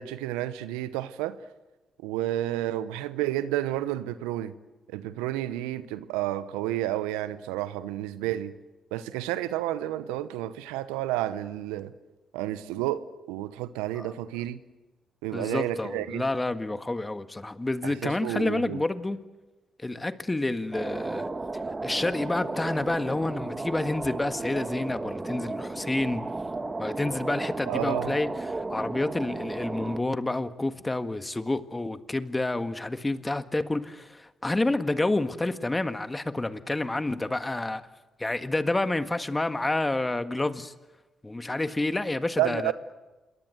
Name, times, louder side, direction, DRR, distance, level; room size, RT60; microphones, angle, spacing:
voice 1, 0.0-1.4 2.0-4.5 4.9-8.5 8.9-11.9 12.3-14.6 15.2-16.2 17.8-18.8 27.7-28.1 42.4-42.7, right 14 dB, 85° right, 0.9 m, -31 dB
voice 2, 15.3-19.2 19.8-21.3 21.8-26.2 26.8-37.8 38.2-40.7 41.2-42.7, left 2 dB, 20° left, 1.7 m, -29 dB
sound 1, 20.7-30.0, right 3 dB, 30° right, 1.8 m, -34 dB
27.5 x 22.5 x 7.9 m
hypercardioid pair, 45°, 0 cm